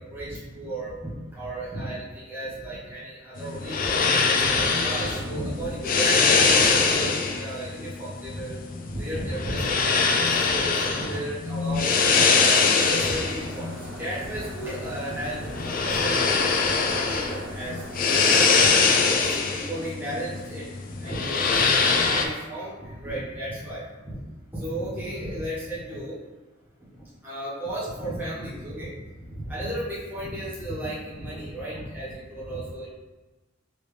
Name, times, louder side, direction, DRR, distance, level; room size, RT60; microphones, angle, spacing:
voice 1, 0.0-4.0 4.3-13.7 14.0-17.8 18.2-18.7 19.1-24.2 24.5-26.2 27.2-32.9, right 1 dB, 10° right, -10 dB, 1.3 m, -34 dB
sound 1, 3.4-22.3, left 4 dB, 45° left, 0.4 m, -23 dB
sound 2, 12.8-19.2, right 1 dB, 75° right, 0.7 m, -41 dB
5.3 x 2.9 x 3.3 m, 1.2 s
head